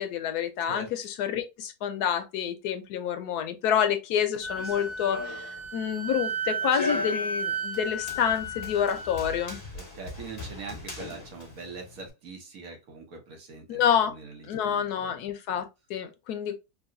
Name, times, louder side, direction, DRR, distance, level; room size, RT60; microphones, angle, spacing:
voice 1, 0.0-9.6 13.7-14.1 14.5-16.6, left 8 dB, 85° left, 1.2 m, -28 dB
Run, 4.4-12.1, left 3 dB, 25° left, 1.4 m, -39 dB
Wind instrument woodwind instrument, 4.4-9.6, right 2 dB, 25° right, 1.1 m, -34 dB
voice 2, 9.7-15.1, right 4 dB, 65° right, 1.4 m, -43 dB
3.8 x 2.3 x 2.5 m
omnidirectional pair, 1.6 m